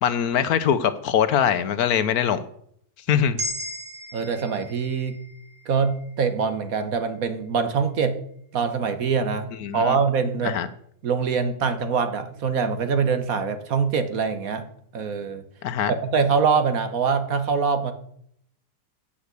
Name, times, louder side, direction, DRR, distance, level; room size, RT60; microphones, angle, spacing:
voice 1, 0.0-2.4 3.1-3.4 9.6-10.0 10.4-10.7 15.6-15.9, left 8 dB, 70° left, 12 dB, 1.1 m, -22 dB
sound 1, 3.4-7.6, equal, 35° right, 1.3 m, -37 dB
voice 2, 4.1-5.2 5.6-8.2 8.5-10.6 11.0-14.7 14.9-15.4 15.9-17.9, right 5 dB, 60° right, 9 dB, 1.4 m, -24 dB
8.5 x 6.2 x 8.1 m, 0.67 s
omnidirectional pair, 1.8 m